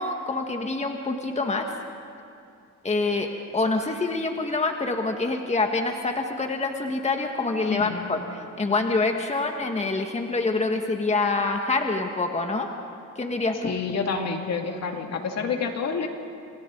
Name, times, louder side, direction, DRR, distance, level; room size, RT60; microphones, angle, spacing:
voice 1, 0.0-1.7 2.8-12.7 13.2-13.7, left 3 dB, 20° left, 3 dB, 1.7 m, -26 dB
voice 2, 7.7-8.0 13.6-16.1, left 5 dB, 60° left, 3 dB, 2.5 m, -28 dB
29.0 x 27.5 x 4.0 m, 2.5 s
cardioid pair, 90°, 30 cm